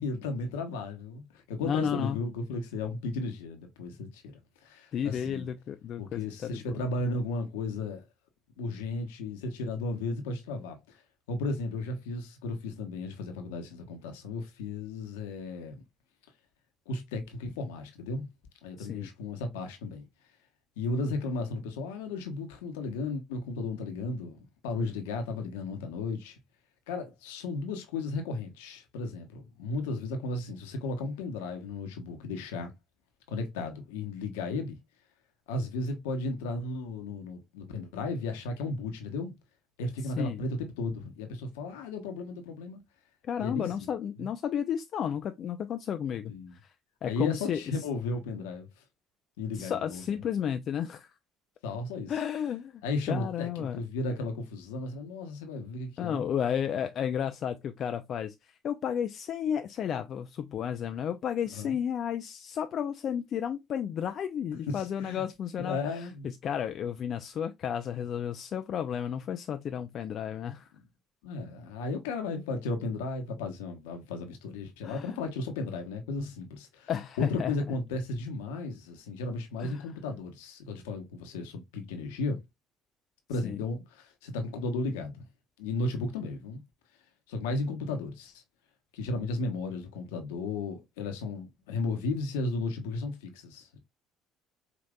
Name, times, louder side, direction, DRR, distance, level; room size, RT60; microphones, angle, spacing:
voice 1, 0.0-5.5 6.0-8.0 8.6-11.0 11.3-15.8 16.9-18.3 18.6-20.1 20.8-26.4 26.9-32.7 33.3-34.8 35.5-39.3 39.8-42.8 43.4-43.9 44.2-44.3 46.3-46.6 47.0-48.7 49.4-50.2 51.6-52.1 52.8-56.2 61.5-61.8 64.7-65.2 65.6-66.3 71.2-76.9 77.2-82.4 83.3-85.2 85.6-86.6 87.3-88.4 88.9-93.8, left 3 dB, 80° left, 1.0 m, -34 dB
voice 2, 1.6-2.2 4.9-6.8 18.8-19.1 40.2-40.4 43.2-46.3 47.0-47.6 49.6-51.1 52.1-53.8 56.0-66.1 66.4-70.7 74.8-75.1 76.9-77.5 79.6-79.9 83.4-83.6, left 8 dB, 55° left, 0.4 m, -32 dB
5.1 x 2.9 x 2.3 m
hypercardioid pair, 55°, 0 cm